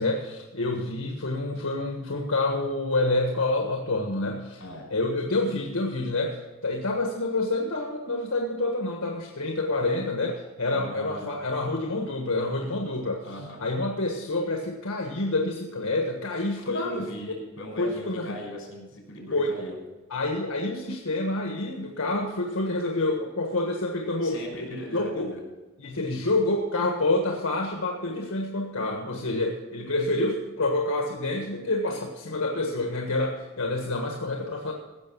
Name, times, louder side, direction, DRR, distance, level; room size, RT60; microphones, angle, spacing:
voice 1, 0.0-4.6 4.9-13.2 13.6-17.1 17.8-18.4 19.3-19.5 20.1-25.3 25.8-34.7, left 2 dB, 90° left, 2 dB, 1.5 m, -28 dB
voice 2, 4.6-4.9 10.6-11.3 13.2-13.6 16.7-19.7 24.2-25.4, equal, 65° left, 0 dB, 5.7 m, -38 dB
17.0 x 6.6 x 7.0 m, 1.1 s
head